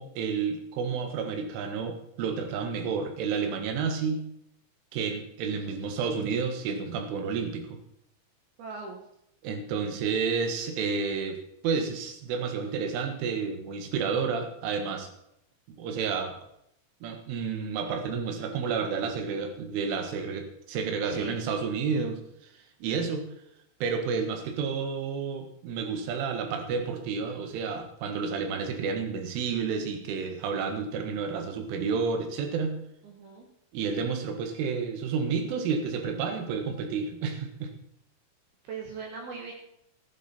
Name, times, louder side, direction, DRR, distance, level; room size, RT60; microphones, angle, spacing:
voice 1, 0.0-4.3 4.9-7.8 9.4-11.4 11.6-15.1 15.7-16.3 17.0-22.2 22.8-23.3 23.8-32.8 33.7-37.7, right 5 dB, 85° right, 5 dB, 4.2 m, -30 dB
voice 2, 8.6-9.0 21.0-21.4 33.0-33.5 38.7-39.5, right 5 dB, 65° right, 1 dB, 2.9 m, -39 dB
15.0 x 11.5 x 4.4 m, 0.76 s
omnidirectional pair, 5.4 m